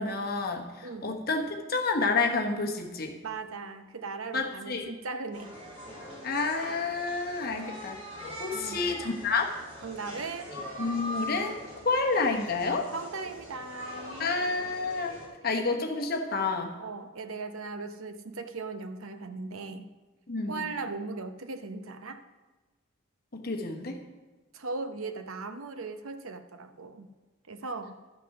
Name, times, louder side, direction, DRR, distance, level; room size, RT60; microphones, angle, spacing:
voice 1, 0.0-3.2 4.3-4.9 6.2-8.0 8.4-9.5 10.8-11.6 11.8-12.9 14.2-15.1 15.4-16.8 20.3-20.6 23.3-24.0, left 3 dB, 45° left, 2 dB, 1.2 m, -29 dB
voice 2, 0.8-1.2 3.2-5.6 8.5-8.9 9.8-10.5 12.9-14.3 16.8-19.9 20.5-22.2 24.5-27.1 27.5-28.0, right 3 dB, 80° right, 9 dB, 0.8 m, -38 dB
sound 1, 5.3-15.3, left 1 dB, 25° right, 4.0 m, -42 dB
12.5 x 6.0 x 5.9 m, 1.2 s
head